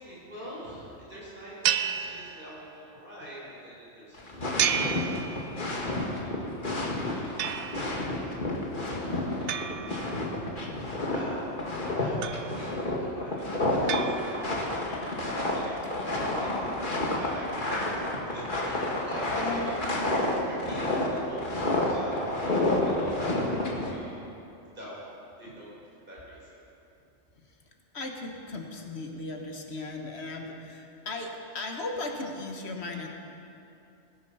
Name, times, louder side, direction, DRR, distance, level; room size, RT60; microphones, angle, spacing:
voice 1, 0.0-6.4 6.8-8.0 8.6-9.0 9.3-11.4 11.8-19.9 20.5-24.2 24.7-25.1 25.4-25.7 26.1-26.6, equal, 45° right, -7 dB, 4.0 m, -45 dB
sound 1, 1.6-2.9 4.6-5.9 7.4-8.1 9.5-10.6 12.2-12.9 13.9-14.8, right 9 dB, 75° right, 0.9 m, -32 dB
sound 2, 4.1-23.9, left 1 dB, 45° left, 1.9 m, -30 dB
voice 2, 9.1-9.4 10.7-11.5 16.3-17.2 18.1-18.3 19.3-19.8 25.5-25.6 27.4-27.6 27.9-33.1, left 2 dB, 60° left, 2 dB, 1.6 m, -38 dB
19.5 x 8.9 x 5.7 m, 2.7 s
omnidirectional pair, 1.2 m